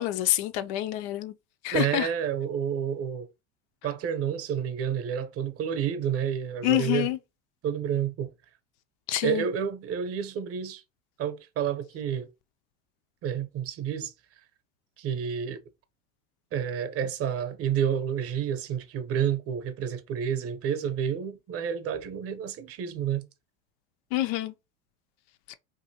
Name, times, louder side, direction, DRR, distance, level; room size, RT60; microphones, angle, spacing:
voice 1, 0.0-1.3 1.6-2.1 6.6-7.2 9.1-9.4 24.1-24.5 25.5-25.6, left 14 dB, 60° left, 0.5 m, -27 dB
voice 2, 1.7-3.3 3.8-7.1 7.6-8.3 9.2-10.8 11.2-12.3 13.2-14.1 15.0-15.6 16.5-23.3, right 8 dB, 40° right, 0.7 m, -29 dB
2.7 x 2.6 x 2.8 m
hypercardioid pair, 90°, 38 cm